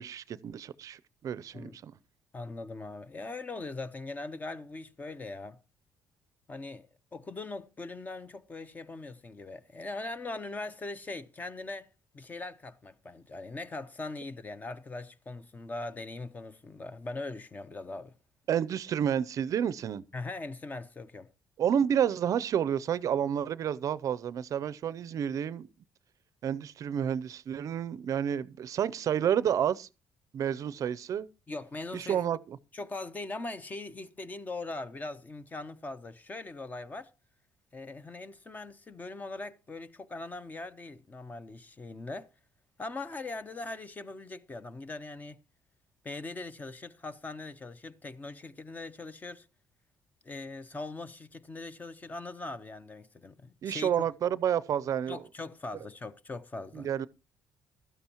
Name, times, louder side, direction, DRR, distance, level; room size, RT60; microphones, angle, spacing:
voice 1, 0.0-1.9 18.5-20.0 21.6-25.7 26.4-29.9 30.3-31.3 31.9-32.6 53.6-55.2 56.7-57.1, right 9 dB, 50° right, 0.5 m, -30 dB
voice 2, 2.3-5.6 6.5-6.9 7.1-11.9 12.1-18.1 20.1-21.3 31.5-32.2 32.7-37.1 37.7-42.3 42.8-45.4 46.0-49.5 50.2-53.9 55.1-56.9, left 2 dB, 25° left, 0.8 m, -41 dB
15.0 x 12.5 x 2.9 m
cardioid pair, 115°, 7 cm